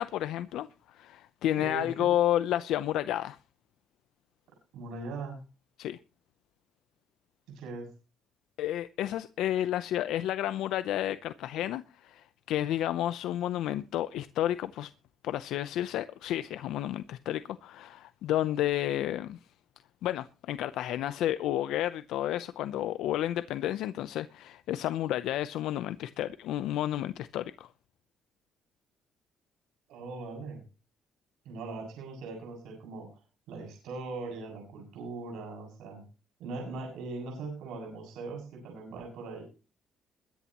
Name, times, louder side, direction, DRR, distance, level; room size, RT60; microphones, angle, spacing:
voice 1, 0.0-3.4 5.8-6.0 8.6-14.9 15.2-19.4 20.0-27.7, left 12 dB, 85° left, 0.7 m, -31 dB
voice 2, 1.5-2.1 4.7-5.4 7.5-7.9 29.9-30.6 31.5-33.2 33.5-36.0 36.4-39.4, right 3 dB, 85° right, 6.9 m, -40 dB
22.0 x 10.0 x 3.0 m
cardioid pair, 115°, 0 cm